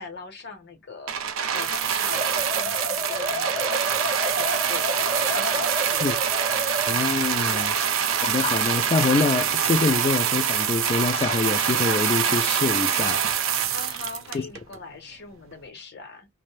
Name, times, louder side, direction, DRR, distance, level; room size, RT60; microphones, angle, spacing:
voice 1, 0.0-6.2 7.5-8.0 13.7-16.3, left 3 dB, 55° left, 0.9 m, -40 dB
sound 1, 1.1-14.7 15.5-15.6, right 8 dB, 85° right, 0.5 m, -25 dB
sound 2, 2.1-7.0, equal, 35° right, 0.6 m, -30 dB
voice 2, 6.9-7.7 8.2-13.2 14.3-14.5, left 4 dB, 30° left, 0.3 m, -25 dB
2.6 x 2.1 x 3.1 m
head